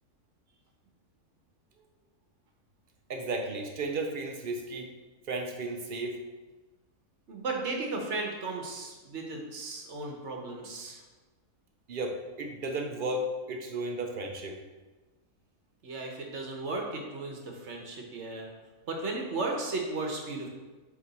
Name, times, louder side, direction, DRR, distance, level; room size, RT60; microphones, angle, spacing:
voice 1, 3.1-4.9 5.3-6.2 11.9-14.6, right 2 dB, 70° right, 3 dB, 0.5 m, -34 dB
voice 2, 7.3-11.0 15.8-18.5 18.9-20.5, right 3 dB, 55° right, 1 dB, 1.1 m, -35 dB
7.8 x 3.1 x 4.0 m, 1.3 s
omnidirectional pair, 1.6 m